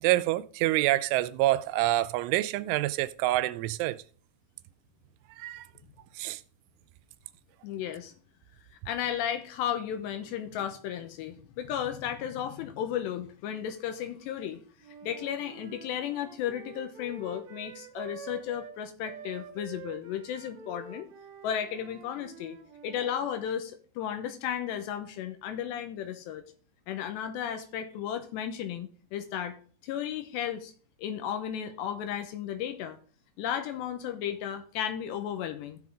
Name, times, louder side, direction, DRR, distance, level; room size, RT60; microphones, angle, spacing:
voice 1, 0.0-4.0 5.4-5.7 6.2-6.4, right 16 dB, 85° right, 3.0 m, -27 dB
voice 2, 7.6-8.1 8.9-14.6 15.0-21.1 21.4-22.6 22.8-26.4 26.9-29.6 29.8-30.7 31.0-33.0 33.4-35.8, left 9 dB, 75° left, 2.9 m, -34 dB
Wind instrument woodwind instrument, 14.8-23.2, right 5 dB, 70° right, 1.6 m, -47 dB
15.5 x 6.2 x 3.6 m
omnidirectional pair, 5.5 m